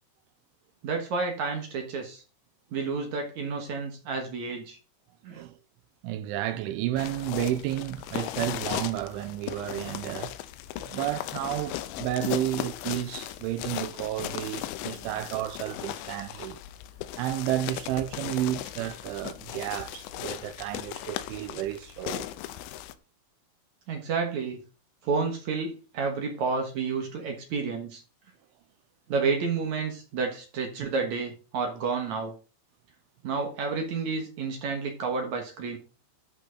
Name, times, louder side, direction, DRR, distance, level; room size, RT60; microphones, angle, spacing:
voice 1, 0.8-2.2 2.7-4.8 5.2-5.4 15.0-15.2 23.9-24.6 25.0-28.0 29.1-32.3 33.2-35.8, right 4 dB, 70° right, 1.8 m, -30 dB
voice 2, 6.0-10.3 10.8-16.6 17.2-22.3 30.8-30.9, right 13 dB, 90° right, 3.2 m, -31 dB
sound 1, 7.0-22.9, left 13 dB, 85° left, 2.8 m, -37 dB
12.0 x 5.5 x 4.0 m
omnidirectional pair, 5.4 m